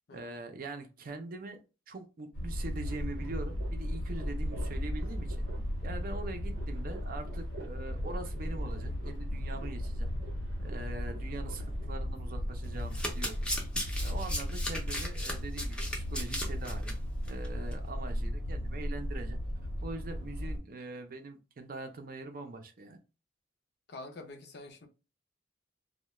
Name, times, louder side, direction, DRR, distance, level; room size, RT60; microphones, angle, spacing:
voice 1, 0.1-1.6 1.9-5.5 5.8-10.1 10.6-13.4 14.0-17.0 17.3-19.4 19.8-23.0, right 2 dB, 50° right, 0.5 m, -43 dB
sound 1, 2.3-20.6, equal, 80° left, 1.0 m, -36 dB
sound 2, 2.8-11.9, right 2 dB, 90° right, 0.6 m, -50 dB
Domestic sounds home sounds, 12.8-16.9 17.3-17.5 17.7-17.8, left 1 dB, 5° left, 0.5 m, -37 dB
voice 2, 23.9-24.9, left 2 dB, 60° left, 0.5 m, -46 dB
2.2 x 2.1 x 3.0 m
head